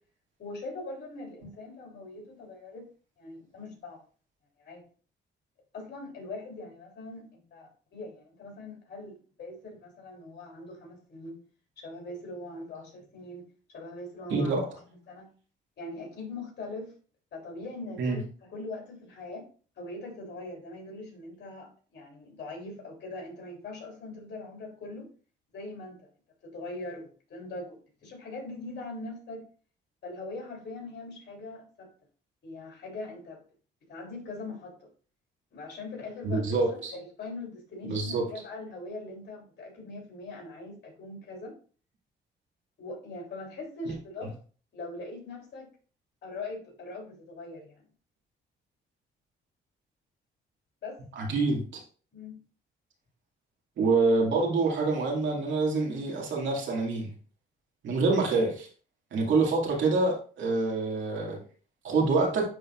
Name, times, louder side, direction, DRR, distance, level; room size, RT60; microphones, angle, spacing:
voice 1, 0.4-2.9 3.2-4.0 4.6-4.8 5.7-11.4 11.8-13.5 13.7-14.6 15.1-15.3 15.8-16.9 17.3-18.2 18.5-19.4 19.8-25.1 25.5-26.0 26.4-29.4 30.0-31.9 32.4-33.4 33.9-34.9 35.5-41.5 42.8-44.3 44.7-45.7 46.2-47.8 50.8-51.0 52.1-52.4, left 2 dB, 60° left, 0 dB, 3.3 m, -41 dB
voice 2, 14.3-14.6 18.0-18.2 36.2-36.9 37.8-38.2 43.9-44.0 51.2-51.8 53.8-57.1 57.8-58.7 59.1-61.4 61.8-62.4, right 3 dB, 70° right, -1 dB, 2.3 m, -26 dB
10.0 x 3.9 x 2.5 m, 0.40 s
cardioid pair, 90°, 20 cm